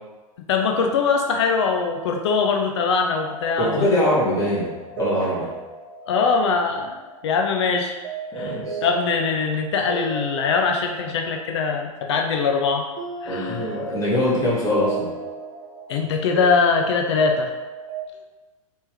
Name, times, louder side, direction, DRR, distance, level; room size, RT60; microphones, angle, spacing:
voice 1, 0.5-3.9 6.1-7.0 7.2-8.0 8.4-12.9 13.2-13.8 15.9-17.5, left 5 dB, 50° left, 3 dB, 0.5 m, -22 dB
sound 1, 0.6-18.0, right 3 dB, 60° right, 0.7 m, -36 dB
voice 2, 3.6-5.5 8.3-8.8 13.3-15.1, left 1 dB, 15° left, -6 dB, 1.5 m, -23 dB
4.3 x 3.3 x 3.0 m, 1.2 s
figure-of-eight pair, 95°, 18 cm